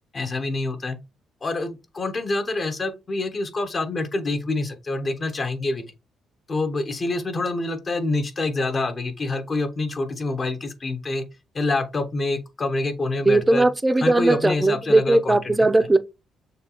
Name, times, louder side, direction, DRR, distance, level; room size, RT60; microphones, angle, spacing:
voice 1, 0.1-1.0 1.4-5.9 6.5-11.2 11.5-13.7 14.0-15.6, left 2 dB, 35° left, 0.8 m, -26 dB
voice 2, 13.2-16.0, right 2 dB, 15° right, 0.5 m, -18 dB
6.4 x 2.3 x 2.9 m
cardioid pair, 90°, 0 cm